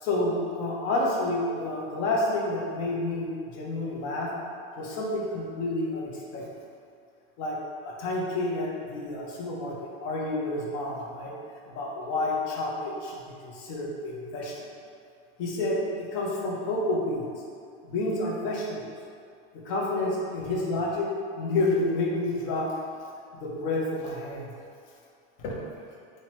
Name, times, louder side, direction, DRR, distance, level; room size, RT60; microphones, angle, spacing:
voice 1, 0.0-4.3 4.8-6.5 7.4-7.6 7.8-9.8 10.0-11.3 11.6-14.6 15.4-17.3 17.9-18.9 19.5-22.7 23.3-24.5 25.4-25.6, left 2 dB, 45° left, -3 dB, 0.6 m, -29 dB
3.1 x 2.0 x 2.8 m, 2.3 s
supercardioid pair, 145°, 31 cm